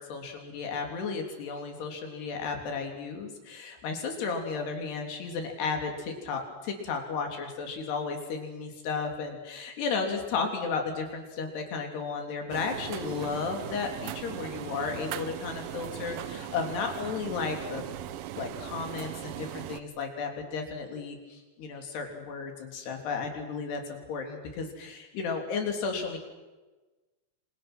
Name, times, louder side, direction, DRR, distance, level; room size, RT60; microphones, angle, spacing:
voice 1, 0.0-17.8 18.4-26.2, left 5 dB, 65° left, 3 dB, 5.2 m, -34 dB
sound 1, 12.5-19.8, right 12 dB, 75° right, 2.2 m, -39 dB
27.5 x 27.5 x 6.2 m, 1.2 s
omnidirectional pair, 5.1 m